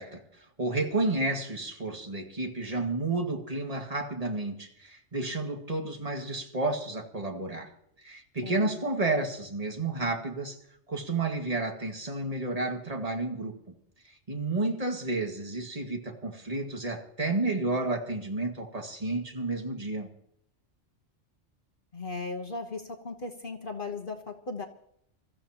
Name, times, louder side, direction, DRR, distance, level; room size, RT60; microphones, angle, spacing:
voice 1, 0.0-7.7 8.0-10.6 10.9-13.7 14.3-20.1, right 2 dB, 30° right, 2 dB, 2.0 m, -31 dB
voice 2, 8.4-8.8 21.9-24.7, left 3 dB, 45° left, 3 dB, 1.3 m, -37 dB
27.0 x 14.5 x 2.9 m, 0.72 s
omnidirectional pair, 1.3 m